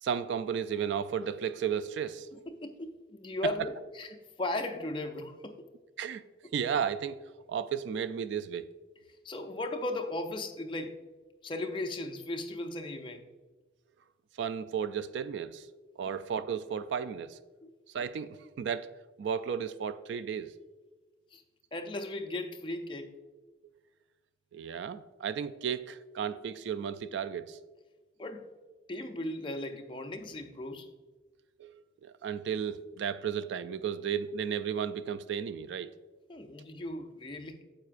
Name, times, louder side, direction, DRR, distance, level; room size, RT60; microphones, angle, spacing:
voice 1, 0.0-2.3 6.0-6.2 6.5-7.2 7.5-8.7 14.4-15.7 16.0-17.4 17.9-18.9 19.2-20.5 24.5-27.6 31.6-35.9, right 7 dB, 70° right, 0.3 m, -34 dB
voice 2, 2.5-5.7 9.2-11.0 11.4-13.2 17.6-17.7 21.3-21.4 21.7-23.1 28.2-28.5 28.9-30.9 36.3-37.6, left 2 dB, 25° left, 0.5 m, -37 dB
9.2 x 7.6 x 2.5 m
head